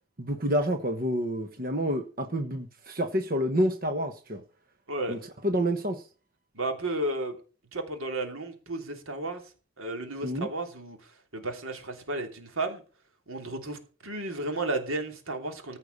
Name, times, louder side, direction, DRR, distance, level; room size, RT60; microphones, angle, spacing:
voice 1, 0.2-4.4 5.1-6.0 10.2-10.5, equal, 45° right, 1.2 m, -28 dB
voice 2, 4.9-5.2 6.5-7.4 7.7-9.4 9.8-11.0 11.3-12.8 13.3-15.8, right 2 dB, 85° right, 3.1 m, -33 dB
15.0 x 5.7 x 6.6 m
head